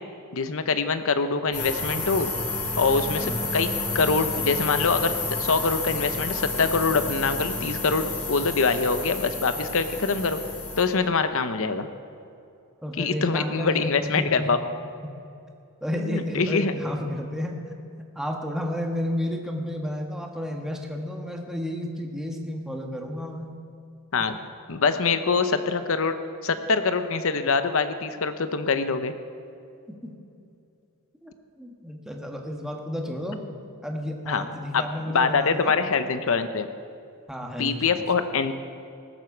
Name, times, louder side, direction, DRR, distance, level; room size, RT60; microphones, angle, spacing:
voice 1, 0.3-2.3 2.8-10.4 10.8-11.9 13.0-14.6 15.9-16.8 24.1-24.4 24.7-26.2 26.4-29.1 34.3-34.5 34.7-34.9 35.1-36.7 37.6-38.5, left 4 dB, 65° left, 10 dB, 0.8 m, -24 dB
sound 1, 1.5-10.8, left 3 dB, 35° left, 2.4 m, -30 dB
voice 2, 3.2-3.5 12.8-14.5 15.8-17.6 18.0-23.5 29.9-30.1 31.2-31.3 31.6-33.4 33.8-35.8 37.3-37.8, left 1 dB, ahead, 1 dB, 1.3 m, -32 dB
18.5 x 7.8 x 7.2 m, 2.6 s
head